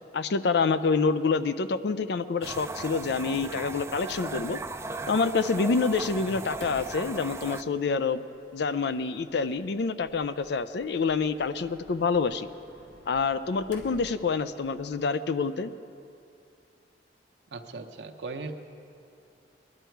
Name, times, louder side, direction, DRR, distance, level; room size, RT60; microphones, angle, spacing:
voice 1, 0.1-4.6 5.1-8.2 8.5-12.5 13.1-15.7, left 4 dB, 65° left, 12 dB, 0.4 m, -27 dB
sound 1, 2.4-7.6, right 3 dB, 15° right, 0.4 m, -37 dB
Sliding door, 3.4-14.9, equal, 85° left, 1.7 m, -54 dB
voice 2, 17.5-18.5, right 3 dB, 70° right, 4 dB, 0.7 m, -38 dB
20.0 x 12.0 x 4.6 m, 2.5 s
head